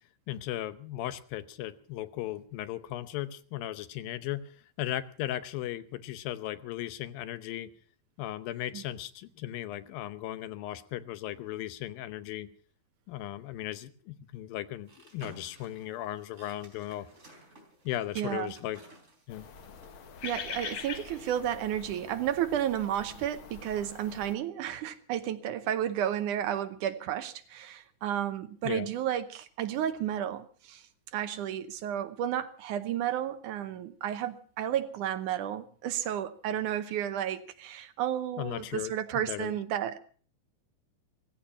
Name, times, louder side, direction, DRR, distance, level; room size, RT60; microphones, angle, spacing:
voice 1, 0.3-4.4 4.8-7.7 8.2-12.5 13.1-17.1 17.9-18.8 19.3-19.5 28.6-28.9 38.4-39.6, left 13 dB, 90° left, 2.7 m, -37 dB
sound 1, 14.9-19.9, right 2 dB, 20° right, 4.0 m, -53 dB
voice 2, 18.2-18.5 20.2-30.8 31.1-40.0, right 10 dB, 70° right, 2.2 m, -32 dB
sound 2, 19.3-24.3, left 7 dB, 60° left, 1.4 m, -43 dB
16.0 x 15.5 x 5.6 m
omnidirectional pair, 4.0 m